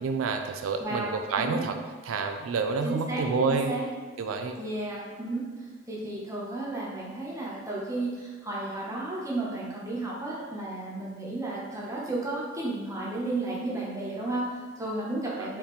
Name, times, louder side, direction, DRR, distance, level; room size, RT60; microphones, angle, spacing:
voice 1, 0.0-1.7 2.1-3.7 4.2-4.6 15.3-15.5, right 4 dB, 85° right, 6 dB, 0.3 m, -28 dB
voice 2, 2.8-3.8 4.6-5.4 5.9-15.6, right 2 dB, 15° right, -5 dB, 0.9 m, -33 dB
4.7 x 3.5 x 3.2 m, 1.5 s
head